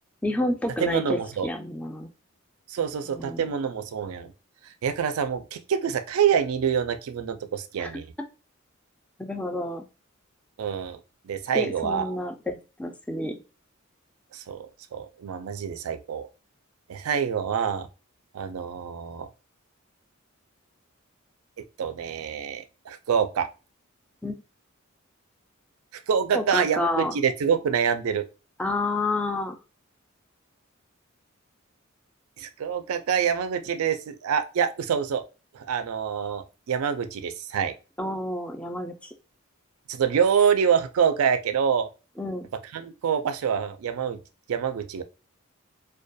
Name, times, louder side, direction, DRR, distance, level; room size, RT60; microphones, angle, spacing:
voice 1, 0.2-2.1 3.1-3.5 7.8-7.9 9.2-9.9 11.5-13.4 24.2-24.3 26.3-27.2 28.6-29.6 38.0-39.1 42.2-42.5, left 1 dB, 5° left, 0.3 m, -29 dB
voice 2, 0.8-1.5 2.7-4.3 4.6-8.1 10.6-11.0 11.2-12.1 14.3-16.3 16.9-17.9 18.3-19.3 21.8-23.5 26.1-28.2 32.4-35.2 35.5-37.7 39.9-41.9 42.7-44.2 44.5-45.0, right 7 dB, 85° right, 0.4 m, -26 dB
2.2 x 2.2 x 2.6 m
head